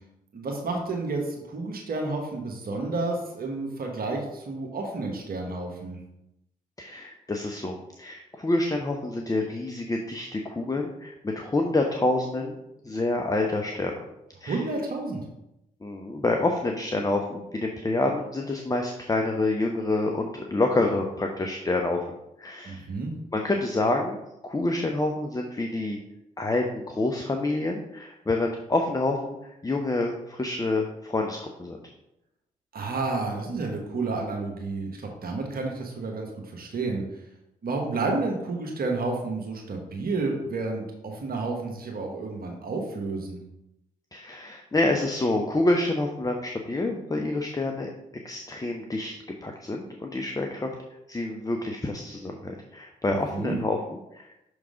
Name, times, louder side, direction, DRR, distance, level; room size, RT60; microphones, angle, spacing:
voice 1, 0.3-6.0 14.4-15.2 22.6-23.1 32.7-37.0 37.6-43.4 53.1-53.6, right 3 dB, 55° right, 1 dB, 1.3 m, -30 dB
voice 2, 6.8-12.6 12.8-13.9 14.4-14.6 15.8-22.1 22.4-22.9 23.3-24.2 24.4-26.0 26.4-31.8 44.1-47.9 48.2-50.7 51.1-54.3, left 2 dB, 20° left, 2 dB, 0.8 m, -27 dB
6.3 x 3.6 x 4.9 m, 0.87 s
hypercardioid pair, 40°, 18 cm